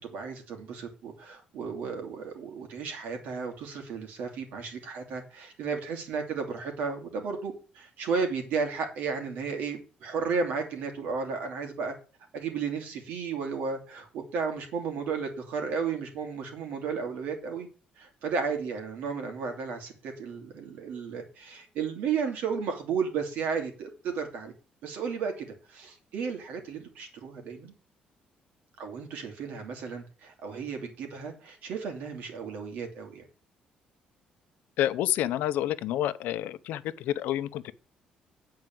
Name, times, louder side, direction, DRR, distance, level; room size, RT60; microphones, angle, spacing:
voice 1, 0.0-11.9 12.3-17.7 18.0-24.5 24.8-27.7 28.8-33.3, right 5 dB, 70° right, 2.8 m, -33 dB
voice 2, 34.8-37.7, left 12 dB, 80° left, 0.7 m, -29 dB
9.4 x 4.7 x 7.7 m
cardioid pair, 175°, 3 cm